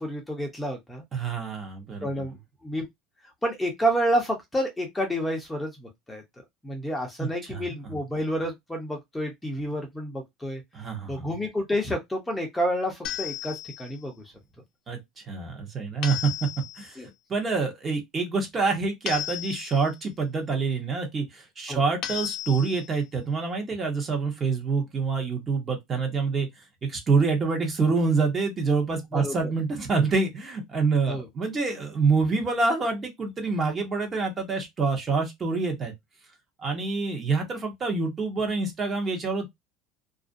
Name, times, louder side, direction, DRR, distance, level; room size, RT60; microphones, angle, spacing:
voice 1, 0.0-1.0 2.0-2.4 2.6-2.9 3.4-6.2 6.6-10.6 11.1-14.1 17.0-17.1 21.7-21.8 29.1-29.3 31.1-31.3, equal, 10° left, 0.6 m, -29 dB
voice 2, 1.1-2.1 7.2-7.6 10.7-11.3 14.9-15.0 15.3-16.5 16.8-17.0 17.3-26.5 26.8-35.9 36.6-39.5, right 4 dB, 25° right, 0.8 m, -26 dB
sound 1, 13.0-14.0 16.0-16.9 19.1-20.0 22.0-22.9, left 11 dB, 55° left, 0.7 m, -34 dB
2.4 x 2.1 x 2.5 m
supercardioid pair, 125°, 0 cm